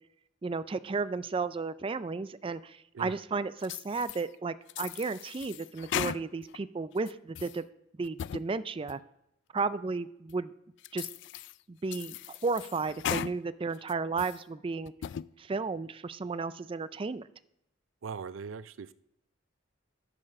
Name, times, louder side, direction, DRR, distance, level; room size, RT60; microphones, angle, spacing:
voice 1, 0.4-7.6 8.0-9.0 9.5-10.5 10.9-11.1 11.7-14.9 15.4-17.3, right 4 dB, 25° right, 14 dB, 0.4 m, -33 dB
sound 1, 3.6-4.2 4.7-6.6 7.0-7.6 8.0-8.5 8.9-9.0 9.6-9.7 10.3-10.4 10.8-11.5 11.9-13.3 13.7-14.4 14.9-15.3, left 10 dB, 65° left, 0.3 m, -37 dB
voice 2, 18.0-18.9, right 5 dB, 85° right, 16 dB, 0.5 m, -40 dB
11.0 x 6.8 x 6.4 m, 0.83 s
head